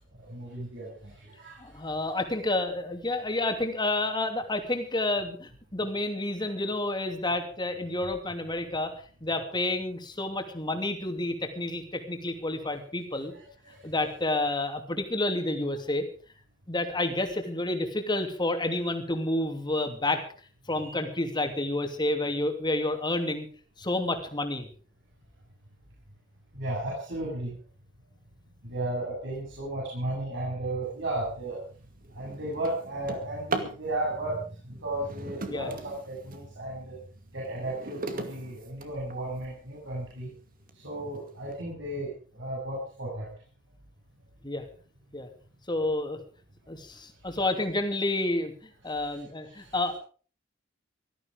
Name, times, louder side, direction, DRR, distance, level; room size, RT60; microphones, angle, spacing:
voice 1, 0.3-1.1 1.4-1.6 13.3-13.8 20.7-21.0 26.5-27.5 28.6-31.6 32.1-37.0 37.3-40.3 40.8-43.3 49.7-49.8, right 1 dB, 65° right, -5 dB, 7.4 m, -34 dB
voice 2, 1.6-8.9 9.2-13.3 13.8-16.0 16.7-20.2 20.7-23.5 23.8-24.7 35.5-35.7 44.4-44.6 45.1-45.3 45.7-46.2 46.7-48.5 48.8-49.9, left 2 dB, 25° left, 5 dB, 2.8 m, -29 dB
Drawer open or close, 31.1-31.4 31.8-33.8 34.9-36.5 37.0-39.4 40.1-40.2 40.7-40.8 41.1-41.5, right 3 dB, 45° right, 2.3 m, -38 dB
18.0 x 13.5 x 5.2 m, 0.41 s
head